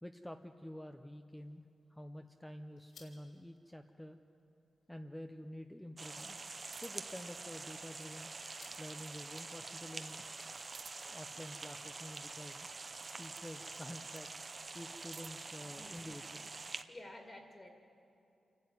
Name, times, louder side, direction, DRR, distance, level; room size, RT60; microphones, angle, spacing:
voice 1, 0.0-1.6 1.9-4.2 4.9-6.4 6.8-8.3 8.8-10.2 11.1-12.7 13.2-14.3 14.7-16.5, equal, 5° left, 6 dB, 0.6 m, -49 dB
sound 1, 1.3-11.6, left 4 dB, 85° left, 3.8 m, -68 dB
sound 2, 6.0-16.8, right 3 dB, 30° right, 0.8 m, -46 dB
sound 3, 6.7-7.2 8.5-9.6 10.6-11.3 12.7-13.5 14.8-15.6, right 7 dB, 65° right, 0.4 m, -57 dB
voice 2, 16.9-17.7, left 1 dB, 25° left, 2 dB, 2.1 m, -51 dB
28.0 x 12.0 x 9.3 m, 2.7 s
wide cardioid pair, 140°, 0 cm